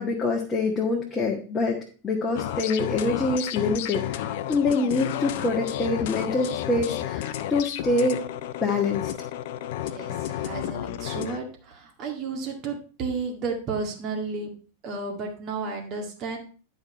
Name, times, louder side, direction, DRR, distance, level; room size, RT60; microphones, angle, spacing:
voice 1, 0.0-1.8 2.0-8.2 8.6-9.1, left 3 dB, 20° left, -1 dB, 1.6 m, -25 dB
sound 1, 2.4-11.4, left 12 dB, 50° left, 0.6 m, -32 dB
voice 2, 9.8-14.5 14.8-16.4, right 4 dB, 35° right, 2 dB, 2.0 m, -32 dB
10.0 x 5.4 x 4.6 m, 0.38 s
figure-of-eight pair, 90°, 0 cm